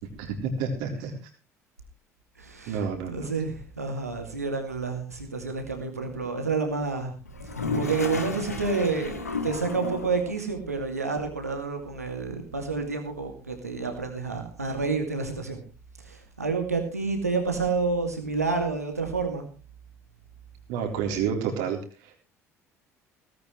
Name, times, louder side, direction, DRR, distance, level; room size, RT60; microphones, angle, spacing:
voice 1, 0.2-1.1 2.7-3.3 20.7-22.2, right 6 dB, 65° right, 3 dB, 3.8 m, -29 dB
voice 2, 2.4-7.1 7.4-15.6 16.0-19.4, right 4 dB, 90° right, 4 dB, 2.5 m, -29 dB
Toilet flush, 7.3-10.3, left 3 dB, 85° left, 2.0 m, -32 dB
18.0 x 16.0 x 3.2 m, 0.34 s
figure-of-eight pair, 60°, 8 cm